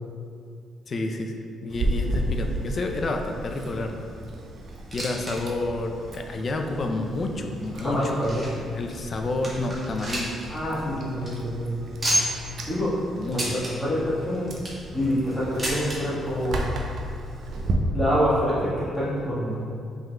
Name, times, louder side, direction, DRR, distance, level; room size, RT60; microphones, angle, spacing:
voice 1, 0.9-4.1 4.9-8.0 8.7-10.4 13.1-13.6, left 2 dB, 45° left, 4 dB, 0.4 m, -29 dB
Chewing mastication, 1.7-17.7, right 1 dB, 65° right, 0.5 m, -35 dB
sound 1, 4.7-5.4 5.6-5.7 6.4-6.5 7.2-8.7 9.1-9.2 9.4-10.5 10.8-10.9 11.1-11.3 12.0-12.5 13.3-13.7 14.3-14.9 15.6-16.0 16.9-17.0 17.2-17.3 18.2-18.3, equal, 25° right, 1.2 m, -29 dB
voice 2, 7.8-8.5 10.5-12.1 12.7-13.0 13.3-14.5 14.9-16.6 17.6-19.6, equal, 15° left, -9 dB, 1.3 m, -26 dB
5.3 x 3.7 x 2.2 m, 2.3 s
cardioid pair, 90°, 0 cm